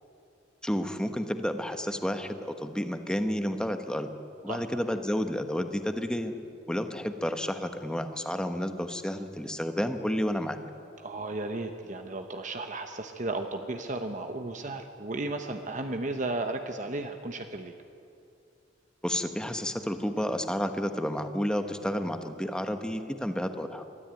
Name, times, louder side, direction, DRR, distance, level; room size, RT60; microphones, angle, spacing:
voice 1, 0.6-4.1 4.4-6.4 6.7-10.6 19.0-23.8, equal, 5° left, 7 dB, 1.1 m, -31 dB
voice 2, 4.5-4.8 11.0-17.7, right 2 dB, 40° right, 6 dB, 1.0 m, -34 dB
22.5 x 13.5 x 9.0 m, 2.5 s
head